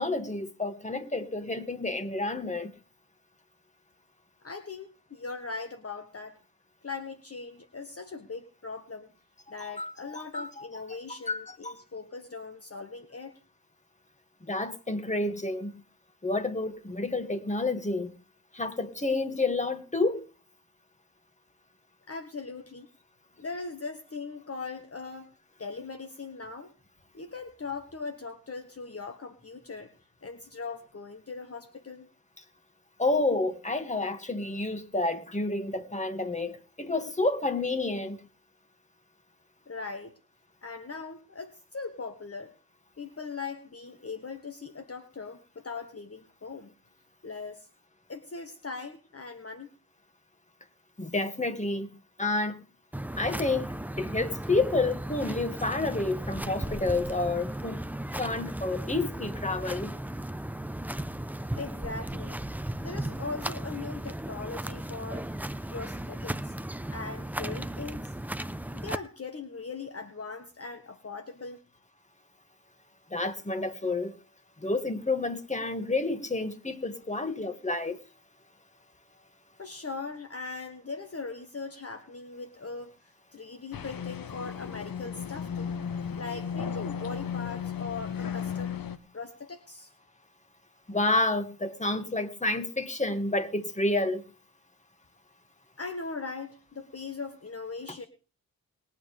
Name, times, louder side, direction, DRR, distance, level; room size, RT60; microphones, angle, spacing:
voice 1, 0.0-2.7 9.8-10.7 11.1-11.7 14.5-15.7 16.2-18.1 18.5-20.3 33.0-38.2 51.0-51.9 52.2-52.6 53.2-57.8 58.1-59.9 73.1-74.1 74.6-78.0 90.9-94.2, left 2 dB, 20° left, 2.2 m, -29 dB
voice 2, 4.4-6.4 6.8-9.1 9.5-13.4 22.1-22.9 23.4-25.3 25.6-26.7 27.1-29.9 30.2-32.1 39.7-40.2 40.6-42.5 43.0-46.7 47.2-47.7 48.1-49.7 61.6-62.4 62.8-65.3 65.7-66.5 66.9-68.1 68.7-71.6 79.6-82.9 83.3-85.7 86.2-88.8 89.1-89.9 95.8-98.1, left 4 dB, 40° left, 1.6 m, -40 dB
sound 1, 52.9-69.0, right 1 dB, 5° right, 0.8 m, -36 dB
sound 2, 83.7-89.0, left 7 dB, 70° left, 1.2 m, -35 dB
21.5 x 8.9 x 3.5 m
cardioid pair, 50°, 36 cm